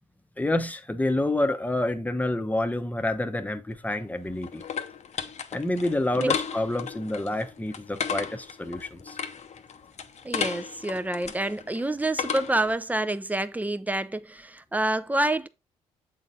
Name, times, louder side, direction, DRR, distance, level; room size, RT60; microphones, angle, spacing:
voice 1, 0.4-4.6 5.5-9.2, left 1 dB, 10° left, 0.9 m, -28 dB
sound 1, 3.8-12.8, left 7 dB, 45° left, 0.8 m, -35 dB
voice 2, 10.2-15.5, right 1 dB, 10° right, 0.6 m, -27 dB
7.4 x 4.0 x 4.0 m
hypercardioid pair, 50°, 16 cm